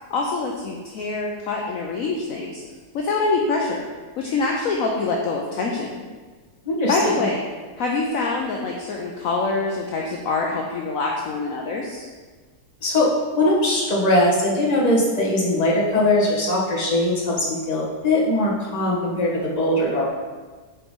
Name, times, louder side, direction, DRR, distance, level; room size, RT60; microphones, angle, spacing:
voice 1, 0.1-2.6 2.9-3.8 4.2-6.0 6.9-7.4 7.8-12.1, left 3 dB, 60° left, -1 dB, 1.0 m, -25 dB
voice 2, 6.6-7.2 12.8-13.1 13.3-20.1, left 1 dB, 25° left, -5 dB, 1.2 m, -21 dB
8.1 x 4.5 x 3.7 m, 1.4 s
omnidirectional pair, 1.9 m